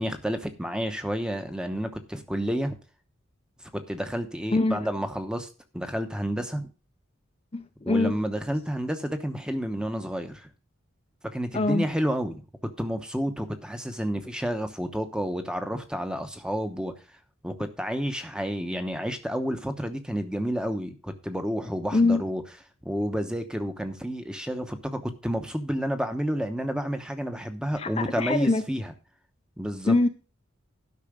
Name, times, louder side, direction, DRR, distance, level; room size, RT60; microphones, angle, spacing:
voice 1, 0.0-2.8 3.7-5.5 5.7-6.7 7.8-10.5 11.3-16.9 17.4-22.4 22.8-28.9 29.6-30.0, equal, 5° right, 0.9 m, -30 dB
voice 2, 7.5-8.2 11.5-11.8 21.9-22.2 27.8-28.6 29.9-30.1, left 2 dB, 30° left, 0.5 m, -23 dB
12.0 x 5.7 x 5.1 m
head